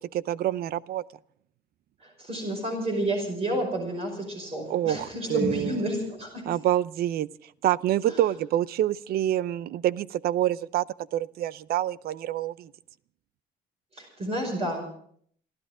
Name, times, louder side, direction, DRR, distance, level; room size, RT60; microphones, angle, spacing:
voice 1, 0.1-1.0 4.7-5.8 6.5-7.3 7.6-10.8 11.1-12.7, right 12 dB, 65° right, 19 dB, 0.6 m, -26 dB
voice 2, 2.0-6.4 8.1-8.2 14.0-14.9, right 1 dB, 35° right, 1 dB, 5.4 m, -30 dB
28.5 x 12.5 x 3.7 m, 0.62 s
cardioid pair, 110°, 17 cm